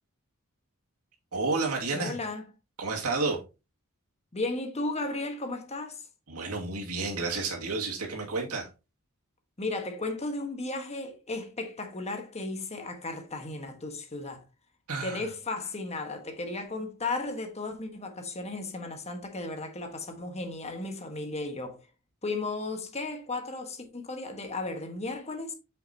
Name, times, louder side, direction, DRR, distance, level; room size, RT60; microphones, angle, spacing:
voice 1, 1.3-2.2 2.8-3.4 6.3-8.7 14.9-15.2, right 3 dB, 85° right, 2.3 m, -30 dB
voice 2, 1.9-2.4 4.3-6.0 9.6-14.4 15.0-21.8 22.2-25.5, left 2 dB, 30° left, 1.4 m, -35 dB
8.4 x 5.8 x 2.8 m
head